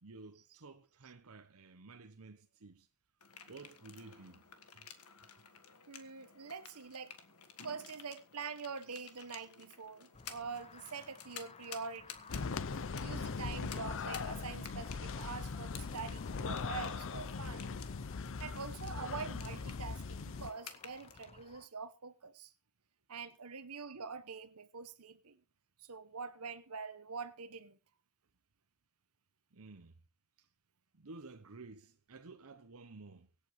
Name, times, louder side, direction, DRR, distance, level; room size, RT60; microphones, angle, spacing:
voice 1, 0.0-2.9 3.5-4.4 4.7-4.9 29.5-30.0 30.4-30.5 30.9-33.3, right 3 dB, 70° right, 0.9 m, -53 dB
sound 1, 3.2-21.2, left 7 dB, 80° left, 1.6 m, -54 dB
voice 2, 5.9-7.2 7.6-12.3 13.0-17.7 18.4-22.5 23.1-25.4 25.8-27.8, right 5 dB, 85° right, 1.2 m, -45 dB
sound 2, 10.1-21.7, left 4 dB, 30° left, 0.7 m, -58 dB
sound 3, 12.3-20.5, left 4 dB, 60° left, 0.6 m, -40 dB
24.5 x 8.6 x 3.2 m
head